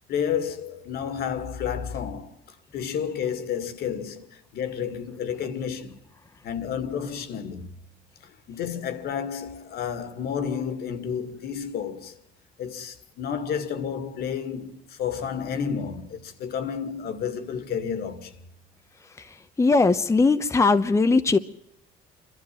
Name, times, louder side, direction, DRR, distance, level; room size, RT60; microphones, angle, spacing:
voice 1, 0.1-2.4 2.7-6.0 6.4-7.7 8.2-12.2 12.6-18.4, left 7 dB, 70° left, 2.2 m, -31 dB
voice 2, 19.6-21.4, left 3 dB, 15° left, 0.9 m, -19 dB
28.0 x 12.5 x 7.6 m
cardioid pair, 110°, 17 cm